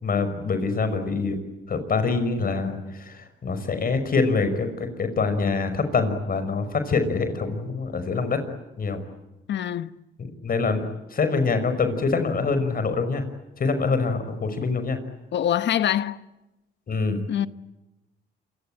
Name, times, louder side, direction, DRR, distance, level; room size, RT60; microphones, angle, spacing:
voice 1, 0.0-1.4 1.7-8.4 8.8-9.0 10.2-10.8 11.1-13.2 13.6-15.0 16.9-17.2, left 4 dB, 45° left, 5.6 m, -25 dB
voice 2, 9.5-9.9 15.3-16.2 17.3-17.5, left 10 dB, 65° left, 1.2 m, -24 dB
27.5 x 23.5 x 9.0 m
cardioid pair, 90°, 20 cm